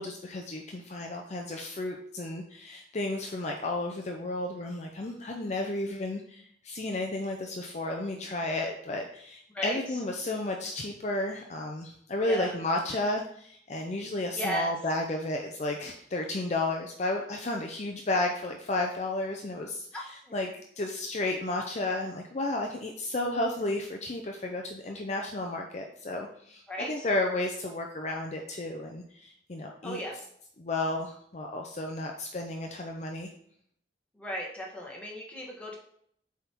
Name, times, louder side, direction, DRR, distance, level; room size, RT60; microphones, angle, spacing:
voice 1, 0.0-30.0 30.6-33.3, left 2 dB, 40° left, 2 dB, 0.6 m, -32 dB
voice 2, 12.2-12.5 14.3-14.7 19.9-20.3 26.7-27.1 29.8-30.2 34.2-35.8, equal, 5° left, -3 dB, 1.5 m, -35 dB
7.8 x 3.6 x 4.5 m, 0.67 s
head